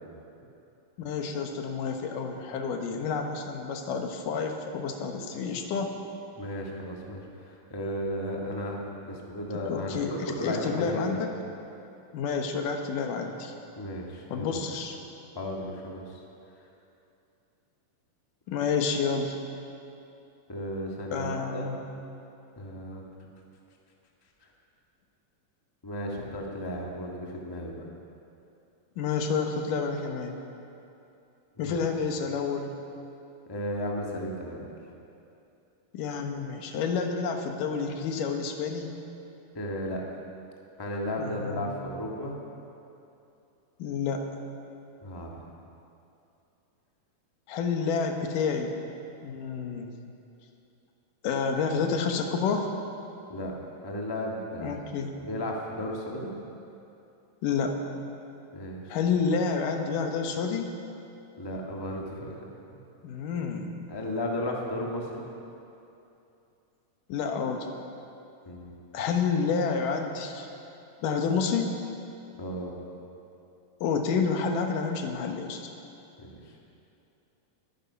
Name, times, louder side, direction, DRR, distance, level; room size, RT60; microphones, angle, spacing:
voice 1, 1.0-6.0 9.7-11.3 12.1-13.5 14.3-15.0 18.5-19.4 21.1-21.8 29.0-30.4 31.6-32.7 35.9-38.9 41.2-41.7 43.8-44.3 47.5-48.8 49.2-49.9 51.2-52.7 54.6-55.1 57.4-57.8 58.9-60.7 63.0-63.9 67.1-67.7 68.9-70.5 71.0-71.7 73.8-75.6, left 5 dB, 80° left, 4 dB, 2.7 m, -29 dB
voice 2, 6.3-11.2 13.8-14.6 15.3-16.2 20.5-21.6 22.6-23.0 25.8-27.8 31.6-31.9 33.5-34.7 39.5-40.0 40.8-42.4 45.0-45.4 53.3-53.5 53.8-54.9 55.2-56.3 58.5-59.0 61.4-62.4 62.7-62.8 63.9-65.3 68.4-68.7 72.4-72.7 76.2-76.6, left 1 dB, 25° left, -1 dB, 0.5 m, -34 dB
21.5 x 9.9 x 5.8 m, 2.8 s
omnidirectional pair, 3.8 m